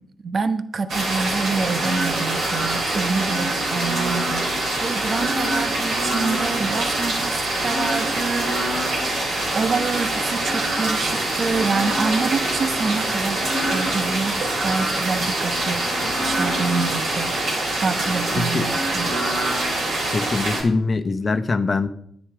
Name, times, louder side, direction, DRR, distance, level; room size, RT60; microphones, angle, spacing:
voice 1, 0.2-9.2 9.5-19.2, right 4 dB, 55° right, 11 dB, 0.9 m, -27 dB
sound 1, 0.9-20.6, right 1 dB, 70° right, 4.0 m, -24 dB
voice 2, 18.3-18.7 20.1-21.9, left 3 dB, 45° left, 8 dB, 0.9 m, -23 dB
10.5 x 10.0 x 4.8 m, 0.67 s
supercardioid pair, 45°, 0 cm